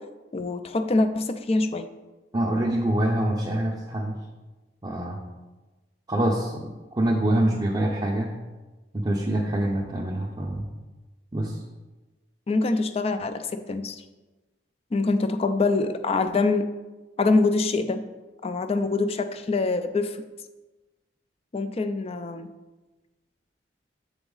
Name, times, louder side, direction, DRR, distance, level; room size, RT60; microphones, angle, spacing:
voice 1, 0.3-1.9 12.5-14.0 14.9-16.7 17.2-18.0 18.4-20.2 21.5-22.5, left 3 dB, 35° left, 9 dB, 0.4 m, -24 dB
voice 2, 2.3-4.2 4.8-5.2 6.1-8.3 8.9-10.7 11.3-11.6, right 1 dB, 25° right, -2 dB, 0.5 m, -25 dB
7.0 x 3.9 x 3.8 m, 1.2 s
head